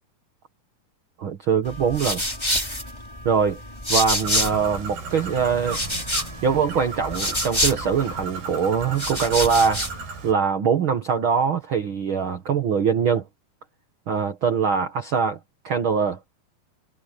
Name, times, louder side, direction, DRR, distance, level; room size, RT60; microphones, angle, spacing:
voice 1, 1.2-2.2 3.2-3.6 3.9-5.8 6.4-9.9 10.2-13.3 14.1-15.4 15.6-16.2, right 6 dB, 50° right, 1.6 m, -22 dB
sound 1, 1.6-4.8 5.1-8.2 8.8-10.0, left 1 dB, 5° left, 5.2 m, -28 dB
Bird, 4.2-10.3, right 4 dB, 75° right, 7.1 m, -35 dB
omnidirectional pair, 4.5 m